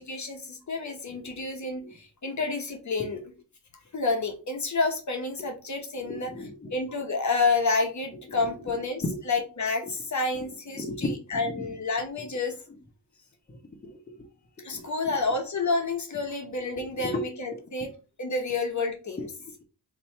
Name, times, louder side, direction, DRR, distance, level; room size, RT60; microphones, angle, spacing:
voice 1, 0.0-3.2 3.9-6.3 6.7-12.5 14.6-17.9 18.2-19.3, left 3 dB, 45° left, 4 dB, 1.0 m, -29 dB
voice 2, 1.1-1.4 1.8-1.9 2.4-2.5 3.0-3.1 5.4-5.5 6.0-6.7 8.3-9.2 9.8-9.9 10.7-11.8 12.2-12.3 13.5-14.3 14.7-15.2 16.9-17.3 19.2-19.5, left 1 dB, 25° left, 4 dB, 0.9 m, -36 dB
2.9 x 2.7 x 4.4 m, 0.33 s
cardioid pair, 50°, 39 cm